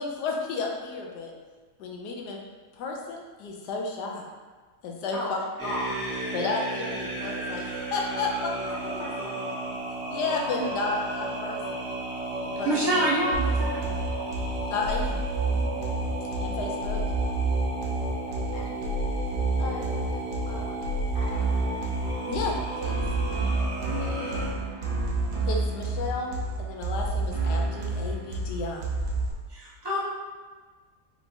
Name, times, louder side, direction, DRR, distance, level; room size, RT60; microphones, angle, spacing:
voice 1, 0.0-1.3 1.8-2.4 2.8-4.3 4.8-5.4 6.3-8.5 8.8-9.3 10.1-11.8 12.4-12.9 13.6-14.0 14.7-15.2 15.5-15.7 16.4-17.0 22.3-23.0 25.5-26.3 26.6-28.8, left 3 dB, 85° left, 0 dB, 1.3 m, -32 dB
voice 2, 5.1-6.3 8.6-9.7 18.3-18.7 19.1-19.2 19.6-20.2 20.5-20.9 21.1-21.9 23.8-25.5, left 1 dB, 50° left, -4 dB, 1.1 m, -39 dB
sound 1, 5.6-24.5, right 2 dB, 45° right, 1.6 m, -34 dB
voice 3, 12.6-13.8 29.5-30.0, right 1 dB, 30° right, -6 dB, 0.4 m, -26 dB
sound 2, 13.3-29.3, right 2 dB, 90° right, 1.5 m, -29 dB
4.4 x 2.8 x 4.3 m, 1.4 s
omnidirectional pair, 1.7 m